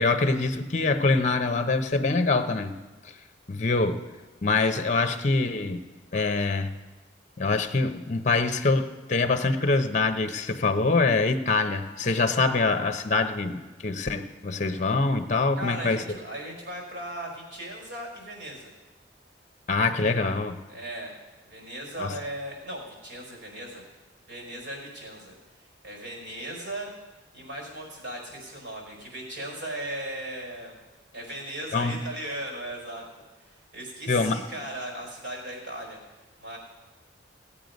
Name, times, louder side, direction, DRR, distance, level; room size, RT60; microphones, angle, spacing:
voice 1, 0.0-2.7 3.5-4.0 4.4-5.8 6.1-6.7 7.4-16.0 19.7-20.6 22.0-22.2 31.7-32.0 34.1-34.4, left 3 dB, 40° left, 9 dB, 0.7 m, -24 dB
voice 2, 15.6-18.7 20.7-21.1 21.4-23.9 24.3-25.3 25.8-26.9 27.3-30.8 31.1-33.0 33.4-36.0 36.4-36.6, right 1 dB, 70° right, 0 dB, 4.9 m, -37 dB
17.5 x 8.5 x 5.3 m, 1.2 s
head